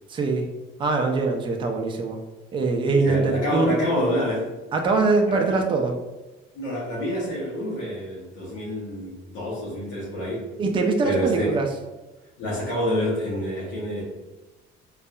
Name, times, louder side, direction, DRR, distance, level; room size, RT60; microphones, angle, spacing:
voice 1, 0.1-0.5 0.8-2.2 2.5-3.8 4.7-6.0 10.6-11.7, right 3 dB, 25° right, 3 dB, 0.4 m, -22 dB
voice 2, 3.0-4.5 5.5-5.6 6.5-10.5 11.0-11.5 12.4-14.0, equal, 70° left, -6 dB, 0.9 m, -27 dB
2.6 x 2.3 x 2.3 m, 1.1 s
cardioid pair, 105°, 21 cm